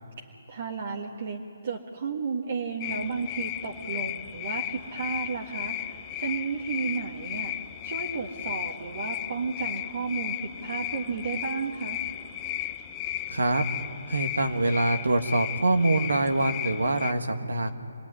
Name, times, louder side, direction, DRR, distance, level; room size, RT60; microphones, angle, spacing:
voice 1, 0.2-7.5 7.8-12.0, right 5 dB, 55° right, 0 dB, 1.8 m, -33 dB
sound 1, 2.8-17.1, left 13 dB, 25° left, 0.8 m, -35 dB
voice 2, 13.3-13.7 14.1-17.7, right 2 dB, 85° right, 6 dB, 1.7 m, -25 dB
26.5 x 19.0 x 9.9 m, 2.5 s
figure-of-eight pair, 145°, 0 cm